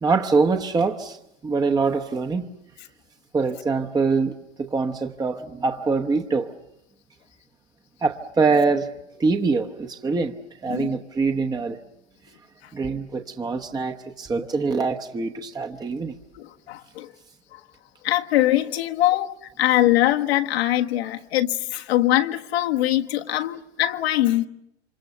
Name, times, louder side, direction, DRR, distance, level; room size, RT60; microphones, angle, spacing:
voice 1, 0.0-1.2 1.4-2.5 3.3-6.5 8.0-10.3 10.6-11.8 12.7-16.2, right 4 dB, 10° right, 1.0 m, -24 dB
voice 2, 16.3-17.1 17.5-17.6 18.0-24.5, left 14 dB, 65° left, 1.5 m, -22 dB
28.5 x 25.5 x 7.0 m
hypercardioid pair, 115°, 34 cm